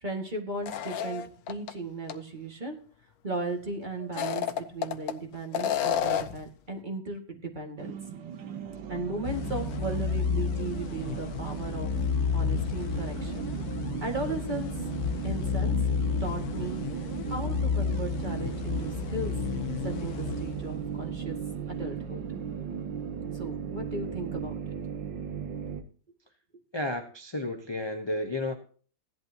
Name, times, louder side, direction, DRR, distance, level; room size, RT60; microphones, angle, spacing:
voice 1, 0.0-2.8 3.2-7.9 8.9-11.9 12.3-13.5 14.0-14.9 15.2-15.8 16.2-16.9 17.3-19.4 19.8-21.4 21.7-22.2 23.3-24.6, right 2 dB, 25° right, 2 dB, 2.1 m, -36 dB
sound 1, 0.6-1.7 2.1-2.2 4.0-5.1 5.5-6.4, left 9 dB, 85° left, 1.5 m, -29 dB
sound 2, 7.8-25.8, right 7 dB, 75° right, 1.6 m, -36 dB
sound 3, 9.2-21.1, left 7 dB, 65° left, 1.1 m, -31 dB
voice 2, 26.7-28.5, left 1 dB, 25° left, 4 dB, 0.6 m, -32 dB
16.5 x 11.0 x 2.9 m, 0.42 s
omnidirectional pair, 2.0 m